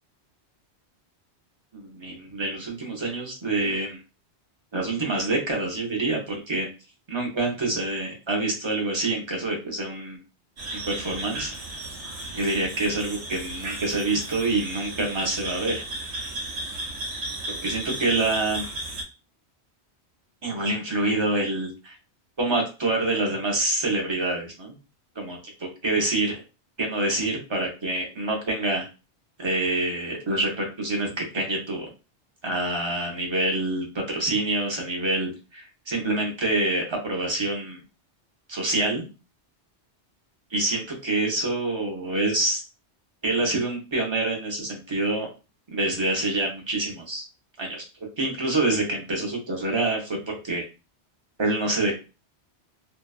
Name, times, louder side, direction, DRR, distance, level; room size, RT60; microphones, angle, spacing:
voice 1, 1.7-4.0 4.7-6.7 7.1-10.2 10.9-11.5 12.3-15.8 17.6-18.6 20.4-22.0 22.4-24.8 25.2-26.4 26.8-28.9 29.4-31.9 32.4-37.8 38.5-39.1 40.5-42.6 43.2-45.3 45.7-47.2 47.6-47.8 48.2-50.6 51.4-51.9, right 2 dB, 30° right, 0 dB, 0.6 m, -26 dB
sound 1, 10.6-19.0, right 1 dB, 90° right, 1.0 m, -34 dB
2.6 x 2.2 x 2.3 m, 0.30 s
omnidirectional pair, 1.2 m